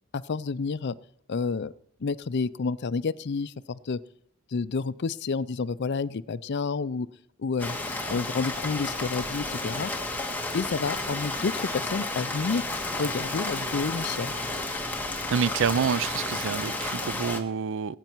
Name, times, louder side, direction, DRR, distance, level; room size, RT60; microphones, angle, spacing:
voice 1, 0.1-0.9 1.3-1.7 2.0-4.0 4.5-7.1 7.4-7.8 8.1-9.9 10.5-12.6 13.0-14.3, left 4 dB, 50° left, 17 dB, 0.5 m, -29 dB
Rain, 7.6-17.4, left 2 dB, 10° left, 1.5 m, -32 dB
voice 2, 15.3-18.0, right 6 dB, 60° right, 19 dB, 0.4 m, -27 dB
21.0 x 9.0 x 4.6 m, 0.73 s
head